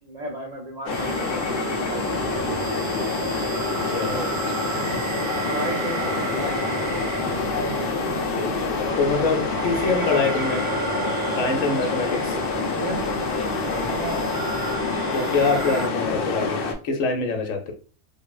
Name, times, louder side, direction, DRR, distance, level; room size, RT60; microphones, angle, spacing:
voice 1, 0.0-3.1 4.1-4.3 5.4-6.8 12.4-13.0 13.9-14.4, right 2 dB, 60° right, -2 dB, 0.4 m, -35 dB
sound 1, 0.9-16.7, left 4 dB, 60° left, 0.6 m, -27 dB
sound 2, 0.9-15.9, right 5 dB, 90° right, 1.1 m, -33 dB
voice 2, 3.8-4.2 8.4-10.7 11.4-12.4 13.7-14.0 15.1-16.6 16.8-17.7, left 4 dB, 85° left, 5 dB, 1.1 m, -25 dB
3.6 x 2.1 x 2.3 m, 0.36 s
omnidirectional pair, 1.4 m